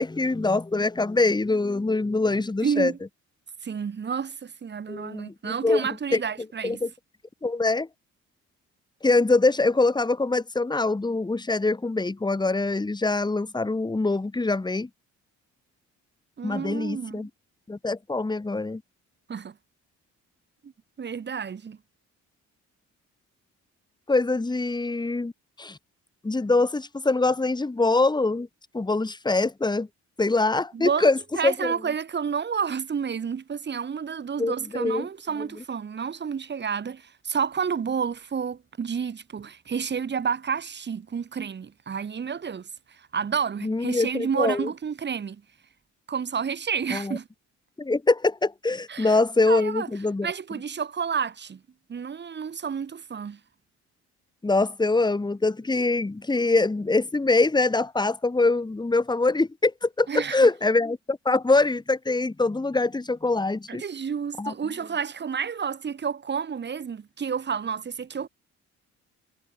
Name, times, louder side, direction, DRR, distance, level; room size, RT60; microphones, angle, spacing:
voice 1, 0.0-2.9 4.9-6.2 6.6-6.9 7.4-7.9 9.0-14.9 16.4-17.3 17.7-18.8 24.1-25.3 25.6-25.8 26.2-28.5 28.7-29.9 30.2-31.7 34.4-35.1 43.6-44.7 46.9-47.2 47.8-50.3 54.4-63.8 64.4-64.5, left 3 dB, 15° left, 1.8 m, -24 dB
voice 2, 2.6-3.0 3.6-6.8 16.4-17.3 19.3-19.5 20.6-20.7 21.0-21.8 30.7-45.4 46.1-47.3 48.9-49.9 50.2-51.6 51.9-53.4 60.1-60.5 63.7-68.3, right 6 dB, 35° right, 1.3 m, -30 dB
cardioid pair, 90°, 30 cm